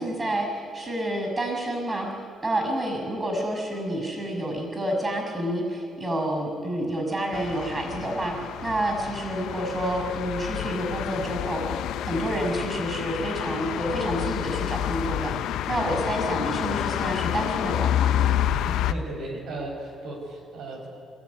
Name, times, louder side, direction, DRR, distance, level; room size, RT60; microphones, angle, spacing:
voice 1, 0.0-2.1 2.4-11.8 12.1-18.1, right 1 dB, 25° right, 3 dB, 6.3 m, -29 dB
sound 1, 7.3-18.9, left 11 dB, 85° left, 0.6 m, -28 dB
voice 2, 18.5-20.9, right 1 dB, 80° right, 0 dB, 5.4 m, -36 dB
25.5 x 14.0 x 9.6 m, 2.4 s
cardioid pair, 90°, 0 cm